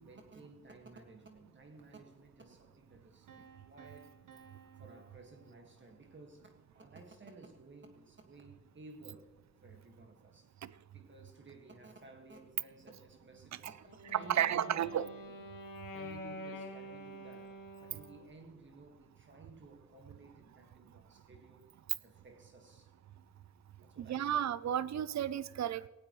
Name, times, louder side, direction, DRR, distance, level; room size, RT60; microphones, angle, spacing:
voice 1, 0.0-4.5 4.8-9.3 9.6-10.6 10.9-15.1 15.9-22.9 23.8-24.5, right 3 dB, 35° right, 3 dB, 1.8 m, -56 dB
Piano, 3.3-6.2, right 7 dB, 75° right, 1.6 m, -59 dB
Wind instrument woodwind instrument, 13.8-18.4, equal, 85° left, 2.1 m, -47 dB
voice 2, 14.1-15.1 24.0-25.9, right 10 dB, 55° right, 18 dB, 0.6 m, -32 dB
18.0 x 17.0 x 3.1 m, 1.2 s
wide cardioid pair, 145°, 32 cm